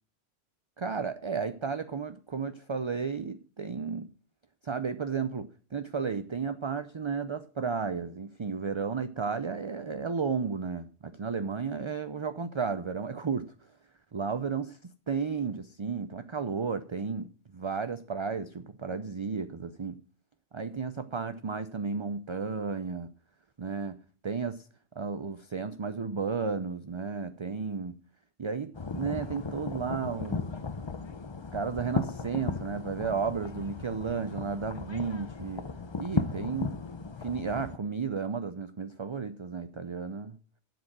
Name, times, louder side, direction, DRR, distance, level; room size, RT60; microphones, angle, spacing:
voice 1, 0.8-4.1 4.6-13.5 14.1-20.0 20.5-23.1 23.6-24.7 24.9-28.0 28.4-30.4 31.5-35.7 36.0-36.7 37.2-40.4, right 5 dB, 35° right, 11 dB, 0.5 m, -33 dB
sound 1, 28.7-37.8, left 4 dB, 30° left, 0.6 m, -36 dB
12.0 x 7.7 x 6.1 m, 0.40 s
omnidirectional pair, 1.2 m